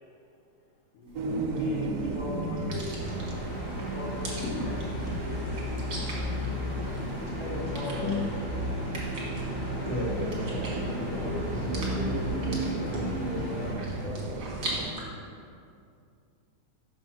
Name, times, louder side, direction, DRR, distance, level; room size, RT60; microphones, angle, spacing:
sound 1, 1.1-15.0, right 1 dB, 50° right, 1.0 m, -42 dB
sound 2, 1.1-14.9, right 3 dB, 85° right, 2.2 m, -35 dB
voice 1, 1.4-4.5 5.0-6.1, left 2 dB, 80° left, -6 dB, 2.5 m, -42 dB
sound 3, 3.0-13.7, left 1 dB, 35° left, 1.0 m, -34 dB
voice 2, 7.4-8.1 10.6-14.5, left 1 dB, ahead, -9 dB, 0.4 m, -38 dB
voice 3, 9.8-10.8, left 3 dB, 60° left, -8 dB, 1.7 m, -33 dB
6.0 x 5.6 x 5.5 m, 2.4 s
omnidirectional pair, 3.8 m